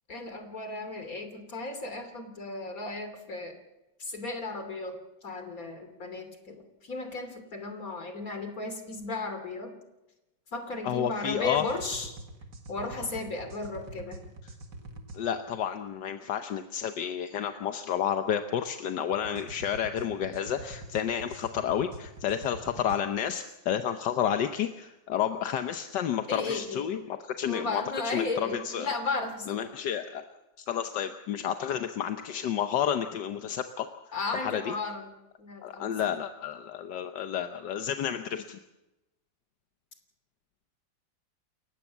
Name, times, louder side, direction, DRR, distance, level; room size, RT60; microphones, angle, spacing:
voice 1, 0.1-3.5 4.0-9.8 10.5-12.1 12.7-14.2 26.3-26.9 27.5-29.6 34.1-35.1 35.4-36.2, left 3 dB, 50° left, 7 dB, 3.3 m, -35 dB
voice 2, 10.8-11.6 15.1-28.9 29.5-30.2 30.6-33.9 34.3-34.7 35.6-38.6, left 9 dB, 80° left, 7 dB, 1.6 m, -31 dB
sound 1, 11.3-15.2 19.1-23.0, right 2 dB, 80° right, 2.5 m, -45 dB
29.0 x 15.0 x 7.3 m, 1.0 s
omnidirectional pair, 1.9 m